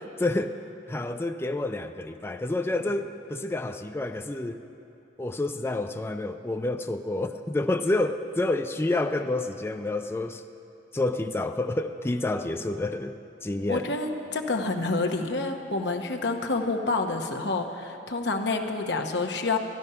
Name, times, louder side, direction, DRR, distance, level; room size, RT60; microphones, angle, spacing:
voice 1, 0.2-0.6 0.9-4.6 5.2-10.4 10.9-13.9, left 2 dB, 15° left, 7 dB, 0.4 m, -29 dB
voice 2, 13.7-19.6, left 3 dB, 70° left, 4 dB, 1.0 m, -28 dB
12.5 x 12.0 x 5.6 m, 2.8 s
head